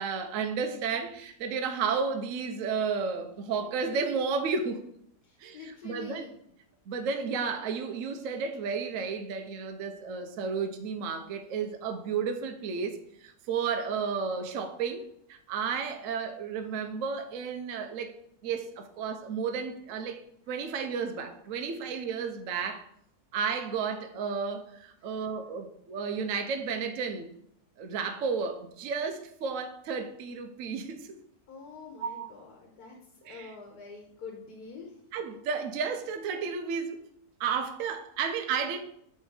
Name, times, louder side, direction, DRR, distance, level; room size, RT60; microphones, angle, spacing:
voice 1, 0.0-4.8 5.4-5.6 5.8-6.2 6.9-22.9 23.3-27.3 27.8-31.1 32.0-32.3 33.3-33.5 35.1-37.0 37.4-38.8, right 5 dB, 65° right, 7 dB, 0.9 m, -32 dB
voice 2, 5.2-6.3 25.0-25.3 31.5-35.0, left 5 dB, 70° left, 1 dB, 1.5 m, -46 dB
8.4 x 3.3 x 4.7 m, 0.70 s
omnidirectional pair, 1.7 m